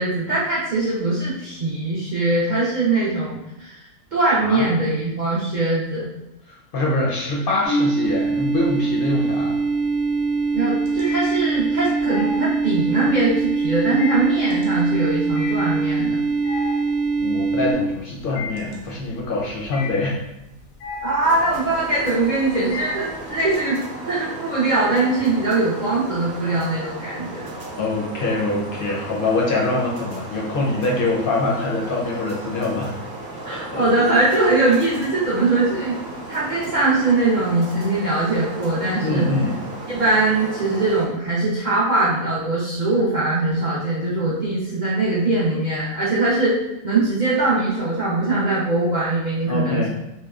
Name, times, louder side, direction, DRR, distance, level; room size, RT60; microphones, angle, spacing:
voice 1, 0.0-3.8 4.1-6.1 10.5-16.2 21.0-27.5 33.4-36.0 36.3-39.3 39.9-46.6 46.8-49.9, right 2 dB, 50° right, -9 dB, 0.5 m, -21 dB
voice 2, 6.5-9.6 17.2-20.2 27.8-32.9 33.5-33.8 39.0-39.6 49.5-49.9, left 2 dB, 60° left, -3 dB, 0.6 m, -24 dB
sound 1, 7.6-17.7, right 4 dB, 15° left, 0.5 m, -22 dB
sound 2, 8.1-8.7 9.1-23.6, left 3 dB, 85° left, 1.0 m, -36 dB
sound 3, 21.2-41.1, right 2 dB, 75° right, 1.0 m, -35 dB
2.8 x 2.1 x 2.3 m, 0.90 s
omnidirectional pair, 1.4 m